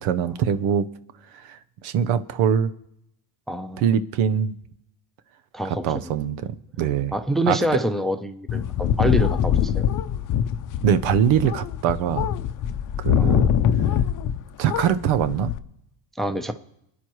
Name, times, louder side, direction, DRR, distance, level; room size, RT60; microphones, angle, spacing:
voice 1, 0.0-0.9 1.4-1.6 1.8-2.7 3.8-4.5 5.7-7.1 7.5-7.6 10.8-12.3 13.0-13.5 14.6-15.5, right 8 dB, 70° right, 13 dB, 0.9 m, -22 dB
voice 2, 3.5-3.8 5.5-6.1 7.1-9.9 13.2-13.5 16.2-16.5, equal, ahead, 9 dB, 0.7 m, -26 dB
sound 1, 8.5-14.4 14.7-15.6, left 9 dB, 40° left, 0.7 m, -23 dB
28.5 x 10.0 x 3.1 m, 0.82 s
supercardioid pair, 105°, 49 cm